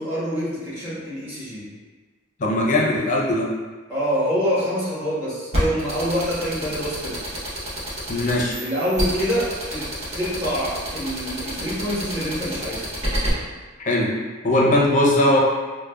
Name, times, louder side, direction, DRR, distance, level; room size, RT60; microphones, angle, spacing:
voice 1, 0.0-1.6 3.9-7.1 8.6-9.8 10.1-12.8, equal, 10° right, -10 dB, 1.2 m, -26 dB
voice 2, 2.4-3.5 8.1-8.6 13.8-14.1 14.4-15.4, left 1 dB, 40° left, -3 dB, 0.6 m, -19 dB
sound 1, 5.5-13.3, right 1 dB, 30° right, 0.8 m, -28 dB
4.6 x 2.1 x 2.3 m, 1.3 s
head